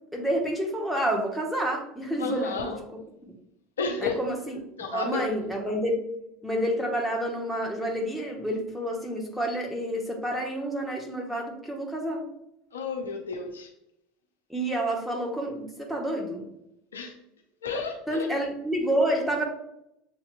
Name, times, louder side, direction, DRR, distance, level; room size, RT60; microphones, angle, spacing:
voice 1, 0.1-2.7 4.0-4.5 4.9-6.0 6.4-12.3 14.5-16.5 18.1-19.4, right 1 dB, ahead, -1 dB, 1.1 m, -29 dB
voice 2, 2.2-2.8 3.8-4.2 4.5-5.3 12.7-13.7 16.9-17.1 17.6-18.3, left 4 dB, 80° left, 2 dB, 0.6 m, -32 dB
7.2 x 2.9 x 2.2 m, 0.80 s
figure-of-eight pair, 75°, 0 cm